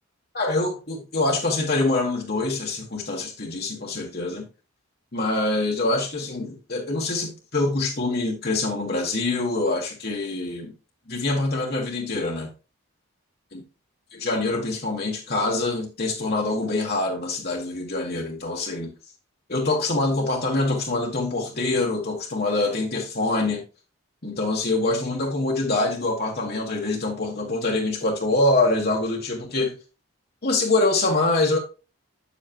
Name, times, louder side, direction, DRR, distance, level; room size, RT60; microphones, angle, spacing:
voice 1, 0.3-4.4 5.1-10.7 11.1-12.5 13.5-13.6 14.1-18.9 19.5-23.6 24.2-29.7 30.4-31.6, left 2 dB, 45° left, 1.5 m, -25 dB
8.2 x 7.3 x 2.9 m
head